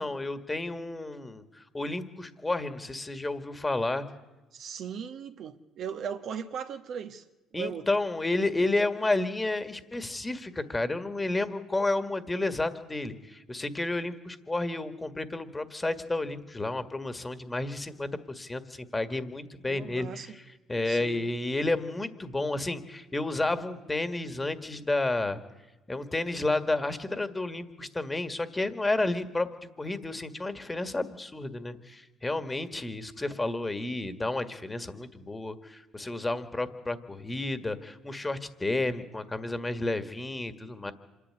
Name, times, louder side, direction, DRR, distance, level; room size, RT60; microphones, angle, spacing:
voice 1, 0.0-4.0 7.5-20.4 20.7-25.4 25.9-40.9, left 2 dB, 15° left, 1.7 m, -31 dB
voice 2, 4.5-7.2 7.5-7.9 19.7-20.4 20.9-21.3, right 7 dB, 60° right, 1.2 m, -38 dB
26.0 x 11.0 x 9.8 m
supercardioid pair, 80°, 0 cm